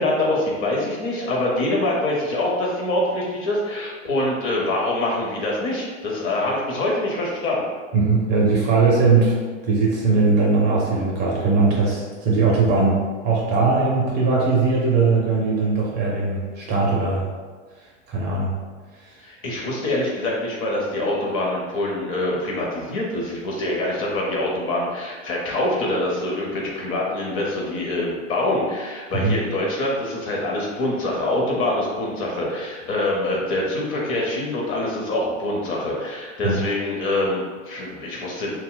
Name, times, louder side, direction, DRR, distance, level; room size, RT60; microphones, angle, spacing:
voice 1, 0.0-7.6 19.2-38.5, left 1 dB, 35° left, -2 dB, 0.7 m, -25 dB
voice 2, 7.9-9.3 9.6-17.2 18.1-18.5 19.1-19.2 29.1-29.4 36.4-36.6, right 3 dB, 25° right, -3 dB, 0.5 m, -20 dB
2.2 x 2.0 x 3.7 m, 1.5 s
hypercardioid pair, 110°, 39 cm